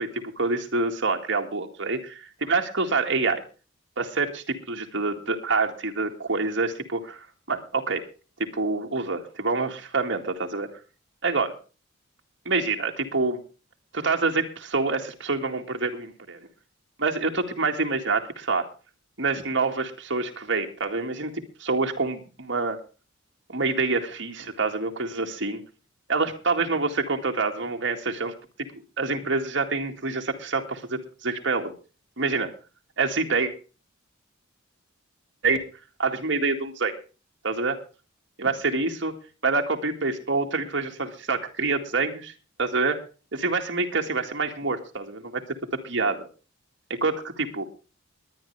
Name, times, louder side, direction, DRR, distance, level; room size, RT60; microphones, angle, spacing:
voice 1, 0.0-3.4 4.0-8.0 8.4-10.7 11.2-11.6 12.5-13.4 13.9-16.4 17.0-18.7 19.2-22.8 23.5-25.6 26.1-28.3 29.0-31.7 32.2-32.5 33.0-33.5 35.4-35.6 36.0-36.9 37.4-37.8 38.4-39.1 39.4-42.3 42.6-43.0 43.3-45.4 45.8-46.3 46.9-47.6, right 3 dB, 60° right, 2 dB, 2.1 m, -26 dB
22.0 x 9.9 x 3.4 m, 0.34 s
head